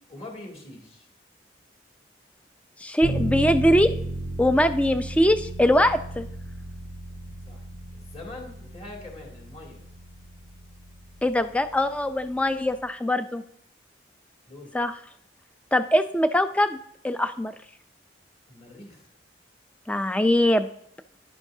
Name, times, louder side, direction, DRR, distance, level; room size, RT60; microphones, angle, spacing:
voice 1, 0.1-1.1 7.5-7.6 7.9-9.8 14.5-14.7 18.5-19.0, left 2 dB, 35° left, -2 dB, 2.5 m, -43 dB
voice 2, 2.8-3.9 4.4-6.3 11.2-13.4 14.7-14.9 15.7-16.8 17.0-17.5 19.9-20.7, left 1 dB, 5° left, 10 dB, 0.4 m, -22 dB
sound 1, 3.0-12.8, right 1 dB, 65° left, 4.1 m, -35 dB
10.5 x 10.0 x 2.7 m, 0.69 s
head